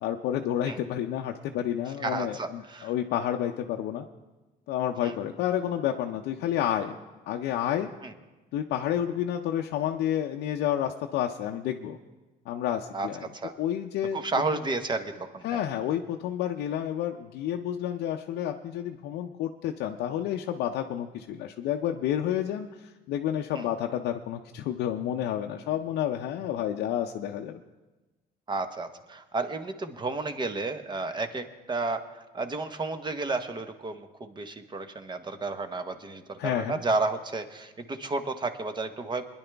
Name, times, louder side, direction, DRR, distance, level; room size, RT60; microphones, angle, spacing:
voice 1, 0.0-4.0 4.7-7.0 7.3-7.9 8.5-12.0 12.5-13.3 13.6-14.2 15.4-27.6 36.4-36.8, left 10 dB, 80° left, 2 dB, 0.6 m, -30 dB
voice 2, 2.0-2.9 5.0-5.1 8.0-8.1 12.9-13.1 13.3-13.5 14.1-15.6 23.5-23.7 28.5-39.2, right 3 dB, 25° right, 9 dB, 1.0 m, -32 dB
21.5 x 10.5 x 3.4 m, 1.1 s
cardioid pair, 110°, 17 cm